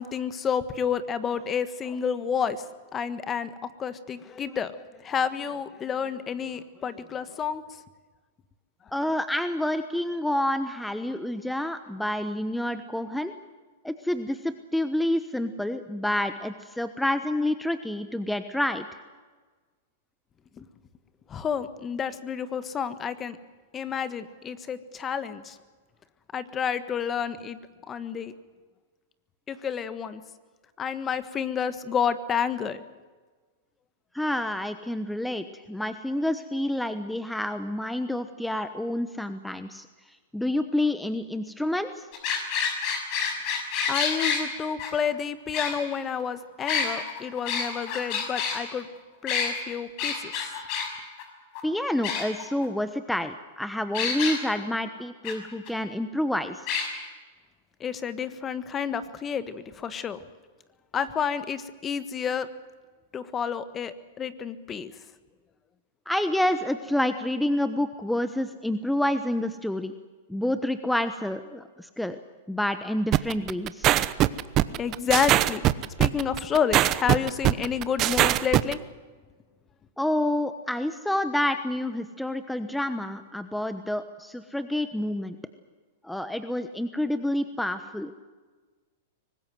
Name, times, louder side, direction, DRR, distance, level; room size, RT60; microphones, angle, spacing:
voice 1, 0.0-2.6 2.9-3.5 3.8-7.6 20.6-20.7 21.3-23.4 23.7-25.6 26.3-27.6 27.9-28.3 29.5-30.2 30.8-32.8 43.9-48.9 49.2-50.5 57.8-60.2 60.9-62.5 63.1-64.9 74.8-75.6 76.0-78.8, left 7 dB, 25° left, 13 dB, 1.4 m, -30 dB
voice 2, 8.9-13.3 13.8-18.9 34.1-39.9 40.3-42.1 51.6-56.7 66.1-69.9 70.3-72.2 72.5-73.9 80.0-85.4 86.0-88.1, left 1 dB, 5° left, 10 dB, 1.1 m, -28 dB
sound 1, 42.1-44.4 44.8-44.9 45.5-46.2 46.6-48.6 49.3-49.5 50.0-50.9 51.2-51.3 51.6-51.7 52.0-52.7 53.9-54.4 55.2-55.3 55.7-55.8 56.7-56.9, left 6 dB, 45° left, 6.0 m, -28 dB
sound 2, 73.1-78.7, right 14 dB, 35° right, 0.9 m, -21 dB
24.0 x 19.5 x 7.8 m, 1.4 s
hypercardioid pair, 130°, 0 cm